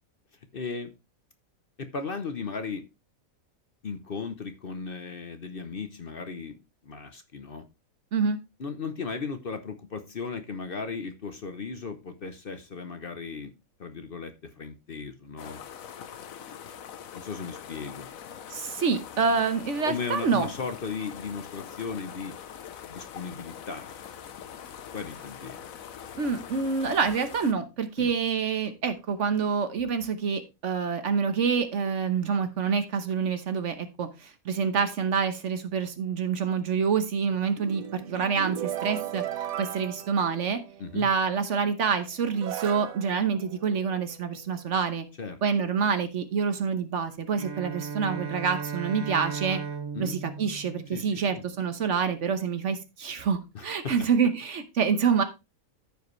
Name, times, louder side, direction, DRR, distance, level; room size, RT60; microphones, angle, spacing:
voice 1, 0.5-0.9 1.8-2.9 3.8-7.6 8.6-13.5 13.8-15.6 17.1-18.1 19.9-22.4 22.9-24.2 24.9-25.6 28.0-28.1 40.8-41.1 45.2-45.4 49.9-50.2 50.9-51.4 53.5-53.6, left 5 dB, 45° left, 8 dB, 0.9 m, -36 dB
sound 1, 15.4-27.5, left 8 dB, 75° left, 1.2 m, -43 dB
voice 2, 18.5-20.5 26.2-40.6 40.9-45.1 45.4-49.6 50.0-55.2, right 6 dB, 60° right, 9 dB, 1.2 m, -27 dB
sound 2, 37.3-41.0 41.8-41.9 42.3-44.3, right 11 dB, 85° right, 1.2 m, -37 dB
Bowed string instrument, 47.3-51.7, right 5 dB, 40° right, 0.3 m, -37 dB
14.0 x 5.0 x 3.1 m, 0.25 s
omnidirectional pair, 1.5 m